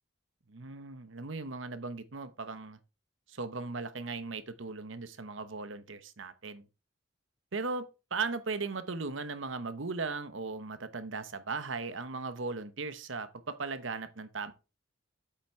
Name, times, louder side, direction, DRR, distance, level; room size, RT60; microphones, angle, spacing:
voice 1, 0.5-2.8 3.3-6.7 7.5-14.5, right 4 dB, 75° right, 1.0 m, -37 dB
8.2 x 6.0 x 4.4 m
head